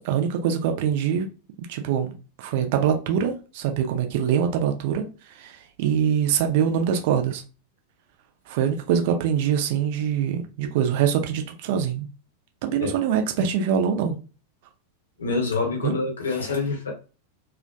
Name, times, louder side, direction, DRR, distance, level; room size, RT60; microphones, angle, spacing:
voice 1, 0.0-1.3 1.6-2.1 2.4-7.4 8.5-12.1 12.6-14.2 15.8-15.9, right 8 dB, 50° right, 0.4 m, -24 dB
voice 2, 15.2-16.9, left 3 dB, 70° left, 0.8 m, -26 dB
2.5 x 2.1 x 2.4 m
figure-of-eight pair, 90°, 0 cm